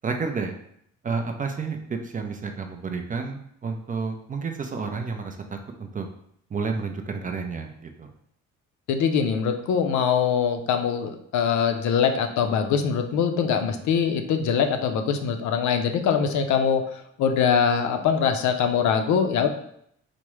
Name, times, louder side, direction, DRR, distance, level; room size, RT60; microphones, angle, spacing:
voice 1, 0.0-0.5 1.0-6.1 6.5-8.1, right 4 dB, 30° right, 4 dB, 0.4 m, -30 dB
voice 2, 8.9-16.8 17.2-19.5, left 7 dB, 70° left, 6 dB, 0.5 m, -23 dB
3.4 x 2.0 x 3.0 m, 0.70 s
cardioid pair, 90°, 30 cm